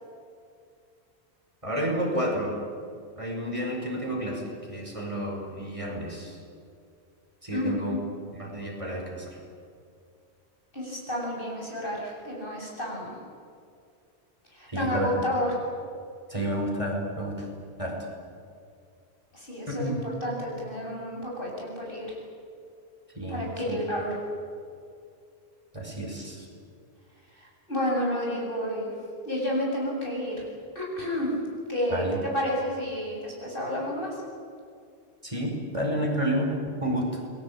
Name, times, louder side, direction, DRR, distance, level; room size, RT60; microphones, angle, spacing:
voice 1, 1.6-2.5 3.2-6.4 7.4-8.0 8.4-9.4 14.7-15.1 16.3-17.5 17.8-17.9 19.7-20.0 23.2-23.8 25.7-26.5 31.9-32.2 35.2-37.1, equal, 30° right, 0 dB, 5.6 m, -30 dB
voice 2, 7.5-8.0 10.7-13.2 14.5-15.5 19.3-22.2 23.3-24.2 27.3-28.9 29.2-30.3 30.7-31.4 31.7-32.0 32.3-34.2, equal, 55° left, -2 dB, 8.4 m, -30 dB
28.5 x 21.5 x 8.9 m, 2.4 s
omnidirectional pair, 1.1 m